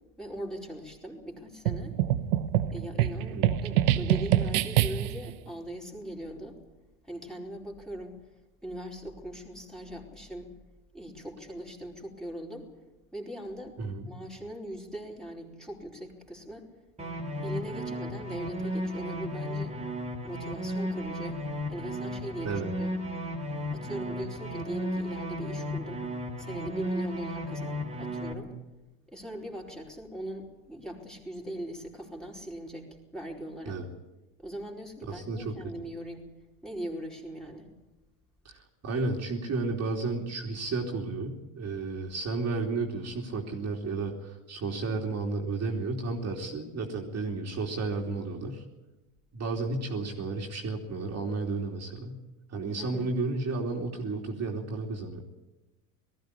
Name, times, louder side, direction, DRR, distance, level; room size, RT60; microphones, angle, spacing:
voice 1, 0.2-2.0 2.7-6.6 7.0-8.2 8.6-10.5 10.9-12.7 13.1-13.8 14.1-16.7 17.4-19.8 20.2-21.4 21.7-22.9 23.7-26.1 26.4-28.5 29.1-33.8 34.4-36.3 36.6-37.7 52.8-53.1, right 1 dB, ahead, -2 dB, 4.6 m, -40 dB
sound 1, 1.7-5.3, right 12 dB, 85° right, 1.1 m, -26 dB
voice 2, 3.3-3.6 13.8-14.1 22.4-22.7 33.6-33.9 35.1-35.5 38.4-48.6 49.3-52.2 52.5-55.2, right 3 dB, 35° right, 0 dB, 3.1 m, -32 dB
sound 2, 17.0-28.3, equal, 15° right, 3.5 m, -34 dB
19.0 x 15.0 x 10.0 m, 1.0 s
supercardioid pair, 100°, 43 cm